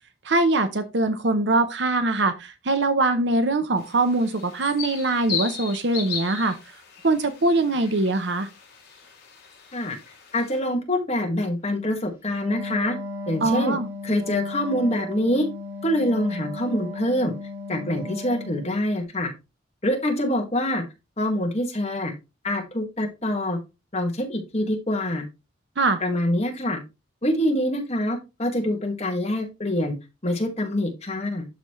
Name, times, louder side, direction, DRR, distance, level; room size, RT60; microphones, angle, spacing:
voice 1, 0.2-6.6 7.0-8.5 13.4-13.9 25.8-26.0, right 2 dB, 60° right, 0.8 m, -22 dB
sound 1, 3.8-10.6, left 7 dB, 55° left, 3.8 m, -36 dB
voice 2, 10.3-13.0 13.3-13.8 14.0-15.5 15.8-17.3 17.7-19.3 19.8-20.8 21.2-22.1 22.4-23.6 23.9-25.2 26.0-26.8 27.2-30.0 30.2-31.5, left 1 dB, 35° left, 1.8 m, -25 dB
Wind instrument woodwind instrument, 12.3-18.8, left 2 dB, 10° right, 2.4 m, -35 dB
12.0 x 4.1 x 3.1 m
head